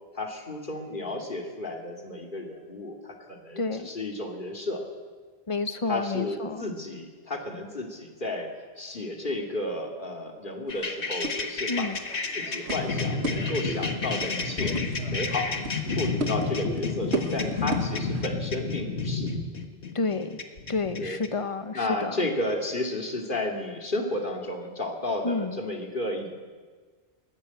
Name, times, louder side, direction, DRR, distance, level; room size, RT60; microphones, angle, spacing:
voice 1, 0.1-4.8 5.9-8.5 8.8-11.9 12.3-14.8 15.1-15.5 15.8-19.3 21.0-21.2 21.7-26.3, left 2 dB, 50° left, 2 dB, 2.7 m, -32 dB
voice 2, 3.6-3.9 5.5-6.6 11.7-12.0 19.9-20.4 20.7-22.1 25.2-25.6, left 3 dB, 30° left, 10 dB, 1.1 m, -30 dB
sound 1, 10.7-21.3, left 4 dB, 80° left, 1.8 m, -30 dB
sound 2, 10.7-18.3, right 2 dB, 80° right, 1.7 m, -37 dB
20.0 x 14.0 x 9.5 m, 1.5 s
omnidirectional pair, 1.1 m